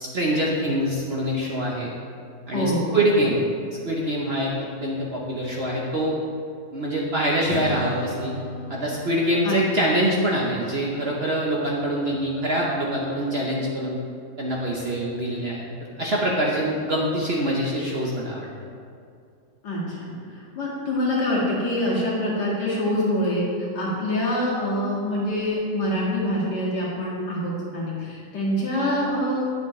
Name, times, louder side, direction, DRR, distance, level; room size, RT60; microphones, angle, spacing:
voice 1, 0.1-1.9 2.5-3.5 3.8-4.5 4.8-6.2 6.7-8.3 8.7-14.0 14.4-15.7 16.0-18.5, right 1 dB, 45° right, -4 dB, 0.9 m, -24 dB
voice 2, 2.5-3.0 9.4-9.8 19.6-29.5, left 1 dB, 70° left, -6 dB, 2.4 m, -25 dB
Strum, 7.5-13.8, left 2 dB, 90° left, 0.5 m, -37 dB
9.4 x 7.0 x 3.1 m, 2.4 s
omnidirectional pair, 1.8 m